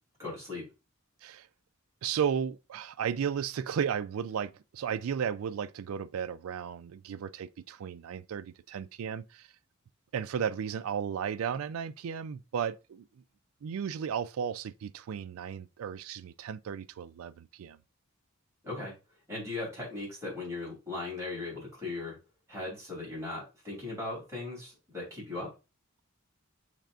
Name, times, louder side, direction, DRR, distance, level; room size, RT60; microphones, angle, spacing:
voice 1, 0.2-0.6 18.6-18.9 19.3-22.2 22.5-25.5, left 2 dB, 15° right, 3.0 m, -38 dB
voice 2, 2.0-9.5 10.1-13.0 13.6-17.8, right 7 dB, 75° right, 0.3 m, -34 dB
6.6 x 3.3 x 2.4 m
head